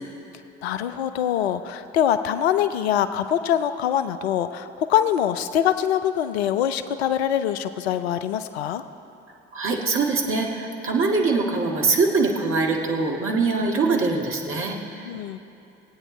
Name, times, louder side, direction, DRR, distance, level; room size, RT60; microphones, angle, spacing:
voice 1, 0.6-8.8 15.1-15.4, left 10 dB, 70° left, 11 dB, 0.5 m, -24 dB
voice 2, 9.5-15.1, right 3 dB, 40° right, 0 dB, 1.9 m, -23 dB
19.0 x 8.9 x 4.4 m, 2.8 s
figure-of-eight pair, 50°, 33 cm